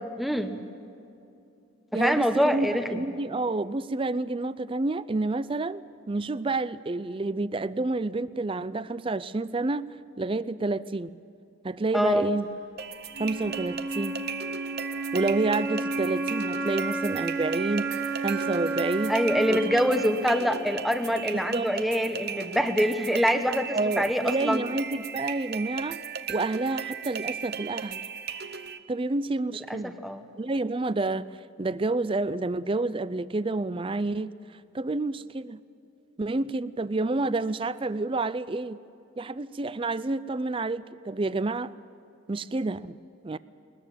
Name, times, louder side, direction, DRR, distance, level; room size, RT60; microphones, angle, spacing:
voice 1, 0.2-0.6 1.9-2.8 11.9-12.3 19.1-24.6 29.7-30.2, equal, ahead, 7 dB, 0.9 m, -25 dB
voice 2, 1.9-9.9 10.2-11.2 11.6-12.4 13.2-14.2 15.1-17.9 18.2-19.1 19.5-19.6 21.5-21.8 23.7-26.0 26.3-28.0 28.9-30.0 30.4-31.3 31.6-34.3 34.7-35.6 36.2-38.8 39.2-41.7 42.3-43.0 43.2-43.4, right 2 dB, 25° right, 16 dB, 0.4 m, -29 dB
sound 1, 12.8-28.8, right 7 dB, 50° right, 0.8 m, -36 dB
Wind instrument woodwind instrument, 13.1-21.2, right 3 dB, 85° right, 4.1 m, -32 dB
21.0 x 20.5 x 7.6 m, 2.7 s
head